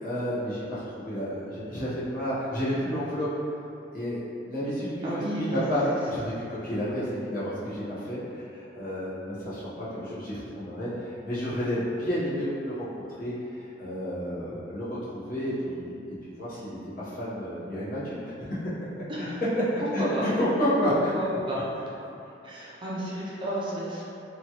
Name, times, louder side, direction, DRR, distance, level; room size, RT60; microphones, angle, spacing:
voice 1, 0.0-3.3 3.9-18.3 19.2-19.3 19.9-21.1, equal, 50° left, -11 dB, 0.9 m, -31 dB
voice 2, 5.0-6.0 19.1-19.4 19.8-20.3 21.1-21.6 22.4-24.0, right 1 dB, 25° right, -8 dB, 0.5 m, -32 dB
2.9 x 2.3 x 2.9 m, 2.7 s
head